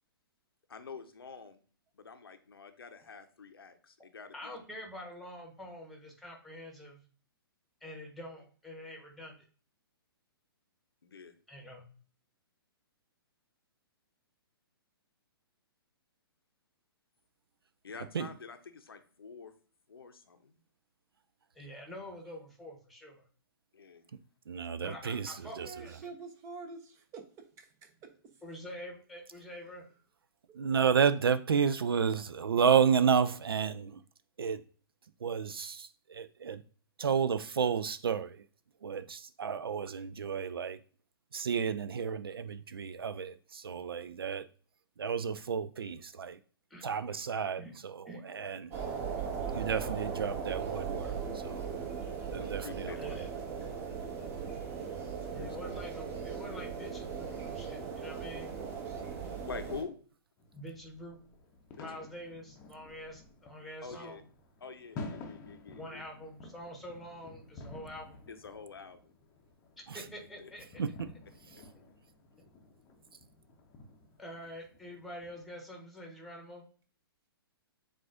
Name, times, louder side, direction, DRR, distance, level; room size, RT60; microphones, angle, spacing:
voice 1, 0.7-1.6 1.9-4.6 11.0-11.4 17.8-19.5 19.9-20.5 23.7-24.0 52.3-53.0 55.4-55.6 59.5-60.0 61.8-61.9 63.8-64.2 64.6-66.0 68.3-69.2 70.4-70.5, left 5 dB, 70° left, 0.7 m, -46 dB
voice 2, 4.3-7.0 7.8-9.4 11.5-11.8 21.5-23.2 24.8-25.9 28.4-29.8 46.7-46.8 47.1-47.2 47.6-47.7 48.1-48.5 52.9-53.3 55.3-58.5 60.5-61.2 61.7-64.2 65.8-68.2 69.9-70.8 74.2-76.6, left 1 dB, ahead, 1.2 m, -46 dB
voice 3, 24.5-25.7 30.6-34.0 34.4-34.6 35.2-36.6 37.0-38.4 38.8-40.8 41.3-44.4 45.0-46.4 46.8-48.7 49.5-51.1 51.4-51.6 52.3-52.9 69.9-70.0 70.8-70.9, right 7 dB, 70° right, 0.4 m, -31 dB
voice 4, 25.6-28.1 30.5-30.6, right 4 dB, 20° right, 0.7 m, -47 dB
sound 1, 48.7-59.8, right 6 dB, 40° right, 1.5 m, -38 dB
sound 2, 60.4-75.5, left 2 dB, 20° left, 0.7 m, -51 dB
7.3 x 2.5 x 2.6 m
figure-of-eight pair, 120°, 13 cm